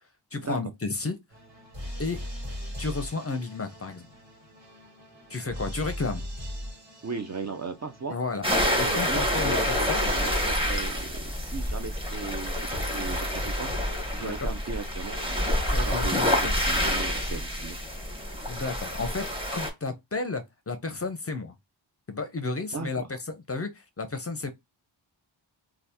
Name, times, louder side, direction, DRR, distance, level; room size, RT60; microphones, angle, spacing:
voice 1, 0.3-1.2 2.0-2.2 2.8-4.1 5.3-6.2 8.1-8.4 8.8-10.1 14.2-14.5 15.7-16.6 18.5-21.6 22.1-24.5, left 3 dB, 30° left, 0.5 m, -32 dB
sound 1, 1.3-19.8, equal, 70° right, 1.7 m, -41 dB
voice 2, 7.0-8.2 8.5-13.7 14.1-15.2 15.9-17.8 22.7-23.0, right 5 dB, 40° right, 0.4 m, -37 dB
sound 2, 8.4-19.7, equal, 10° right, 0.8 m, -28 dB
2.7 x 2.3 x 3.4 m
wide cardioid pair, 110°, 47 cm